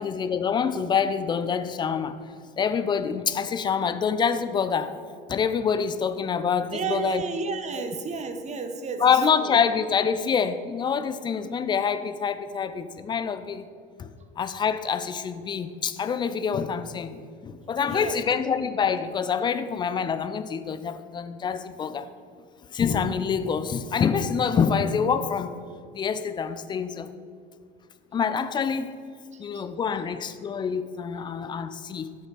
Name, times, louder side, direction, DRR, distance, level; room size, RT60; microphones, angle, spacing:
voice 1, 0.0-2.2 2.6-5.0 5.3-7.2 9.0-13.7 14.0-14.1 14.4-22.1 22.7-25.5 25.9-27.1 28.1-29.0 29.4-32.2, left 6 dB, 15° left, 11 dB, 0.3 m, -26 dB
voice 2, 6.7-9.6 17.9-18.3 29.3-29.6, right 5 dB, 25° right, 7 dB, 0.8 m, -32 dB
8.8 x 5.1 x 4.8 m, 2.2 s
figure-of-eight pair, 65°, 29 cm